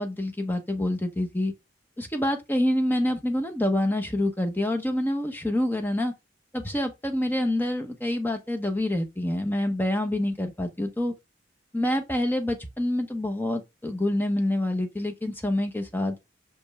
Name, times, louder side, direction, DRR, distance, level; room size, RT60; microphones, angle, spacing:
voice 1, 0.0-1.5 2.0-6.1 6.5-11.1 11.7-16.2, left 1 dB, 10° left, 0.9 m, -27 dB
5.9 x 5.2 x 3.4 m
head